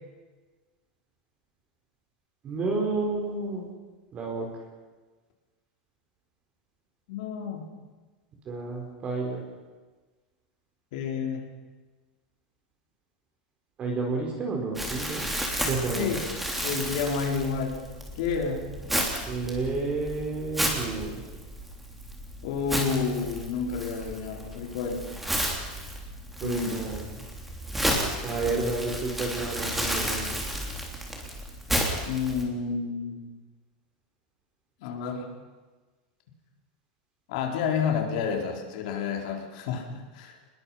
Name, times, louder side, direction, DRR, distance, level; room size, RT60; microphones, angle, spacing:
voice 1, 2.4-3.7 4.1-4.5 8.5-9.4 13.8-15.2 15.7-16.2 19.3-21.2 26.4-27.0 28.2-30.3, right 3 dB, 25° right, 1 dB, 4.3 m, -30 dB
voice 2, 7.1-7.6 10.9-11.5 15.9-16.2 16.6-17.9 18.2-18.8 22.4-25.1 26.4-26.9 32.0-33.2 34.8-35.3 37.3-40.4, left 6 dB, 65° left, 2 dB, 4.0 m, -30 dB
Crumpling crinkling, 14.8-32.4, equal, 5° right, 3.3 m, -32 dB
25.5 x 21.0 x 5.7 m, 1.3 s
supercardioid pair, 145°, 4 cm